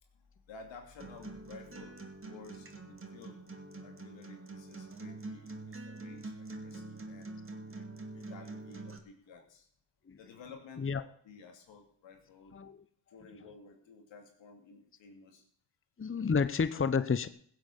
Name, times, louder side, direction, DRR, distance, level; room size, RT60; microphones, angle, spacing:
voice 1, 0.0-3.5 3.8-7.4 8.1-9.7 10.2-12.5 13.1-15.4 16.7-16.8, left 5 dB, 90° left, 3 dB, 2.7 m, -53 dB
Acoustic guitar, 1.0-9.0, right 2 dB, 30° right, 2.3 m, -45 dB
voice 2, 16.0-17.3, left 5 dB, 30° left, 13 dB, 0.9 m, -30 dB
16.0 x 7.7 x 7.4 m, 0.62 s
supercardioid pair, 45°, 44 cm